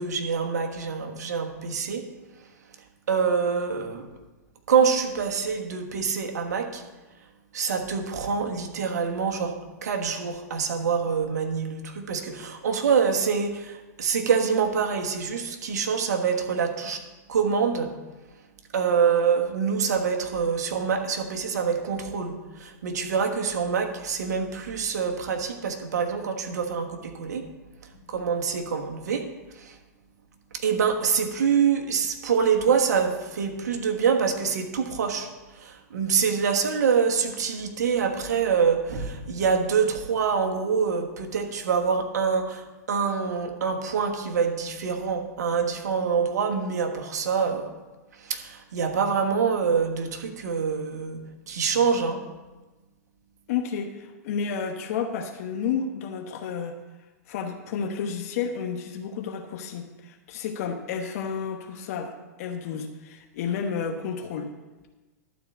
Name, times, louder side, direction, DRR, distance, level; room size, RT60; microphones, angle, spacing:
voice 1, 0.0-2.0 3.1-4.1 4.7-6.8 7.5-17.0 17.3-18.0 18.7-27.5 28.1-29.3 29.5-29.8 30.5-47.7 48.2-51.2 51.5-52.2, right 6 dB, 75° right, 4 dB, 1.4 m, -25 dB
voice 2, 53.5-56.8 57.3-64.5, left 6 dB, 55° left, 5 dB, 1.0 m, -31 dB
12.0 x 4.6 x 7.7 m, 1.2 s
hypercardioid pair, 110°, 9 cm